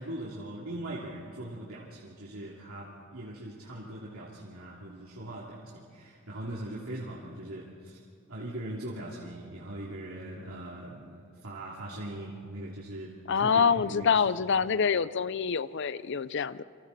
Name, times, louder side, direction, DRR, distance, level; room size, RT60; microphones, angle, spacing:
voice 1, 0.0-8.0 8.3-14.1, right 1 dB, 80° right, -5 dB, 2.9 m, -40 dB
voice 2, 13.3-16.6, left 6 dB, 55° left, 17 dB, 0.6 m, -26 dB
29.0 x 24.5 x 4.2 m, 2.2 s
head